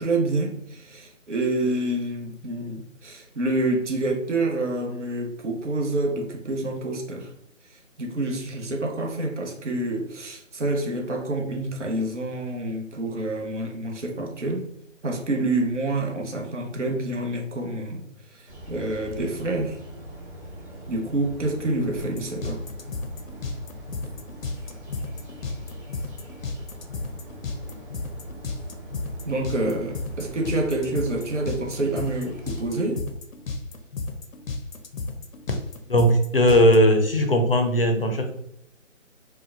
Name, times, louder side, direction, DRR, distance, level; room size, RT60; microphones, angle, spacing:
voice 1, 0.0-7.3 8.0-14.7 15.0-18.0 18.3-19.8 20.9-22.6 29.2-33.0, right 2 dB, 65° right, 1 dB, 1.0 m, -27 dB
sound 1, 18.5-32.6, right 1 dB, 15° right, 0.8 m, -41 dB
sound 2, 22.0-36.8, left 3 dB, 85° left, 0.7 m, -33 dB
voice 2, 35.9-38.3, equal, 45° left, 4 dB, 0.6 m, -18 dB
4.3 x 2.3 x 2.5 m, 0.74 s
figure-of-eight pair, 170°, 39 cm